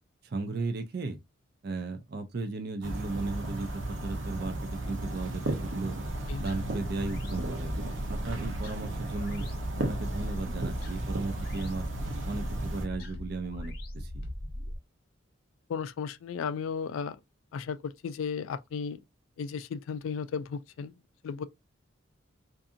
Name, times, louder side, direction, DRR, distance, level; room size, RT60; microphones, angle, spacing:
voice 1, 0.2-1.2 1.6-6.0 6.4-7.7 8.1-9.5 9.8-11.9 12.2-14.2, right 3 dB, 50° right, 0.4 m, -35 dB
sound 1, 2.8-12.9, right 2 dB, 75° right, 0.7 m, -35 dB
sound 2, 6.0-14.8, left 1 dB, 50° left, 0.7 m, -39 dB
voice 2, 15.7-17.2 17.5-19.0 19.4-20.9 21.2-21.4, left 6 dB, 90° left, 0.3 m, -34 dB
2.6 x 2.6 x 2.4 m
head